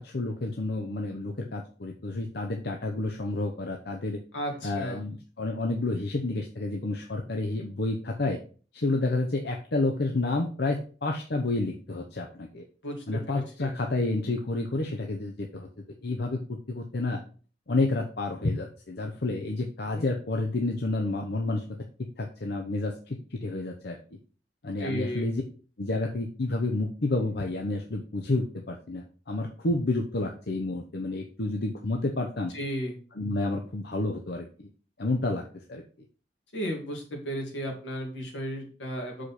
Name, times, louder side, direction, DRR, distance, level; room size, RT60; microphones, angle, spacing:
voice 1, 0.0-4.2 4.6-8.4 8.7-12.6 13.1-15.7 16.0-17.2 17.7-21.6 22.0-24.0 24.6-25.4 25.8-32.5 33.2-34.7 35.0-35.4 35.7-35.8, left 2 dB, 60° left, 2 dB, 0.8 m, -30 dB
voice 2, 4.3-5.0 12.8-13.7 19.9-20.0 24.8-25.3 32.5-32.9 36.5-39.2, equal, 80° left, 1 dB, 2.3 m, -34 dB
6.4 x 5.0 x 4.2 m, 0.39 s
head